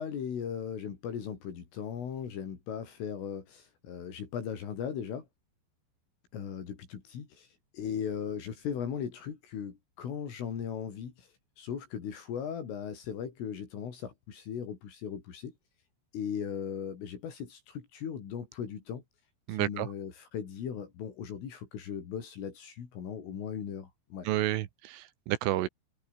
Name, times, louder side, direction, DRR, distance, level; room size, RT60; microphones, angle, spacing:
voice 1, 0.0-5.3 6.3-11.3 11.6-15.6 16.1-19.0 19.5-24.3, left 8 dB, 75° left, 6.8 m, -38 dB
voice 2, 19.5-19.9 24.3-25.7, right 14 dB, 80° right, 3.9 m, -30 dB
omnidirectional pair, 5.8 m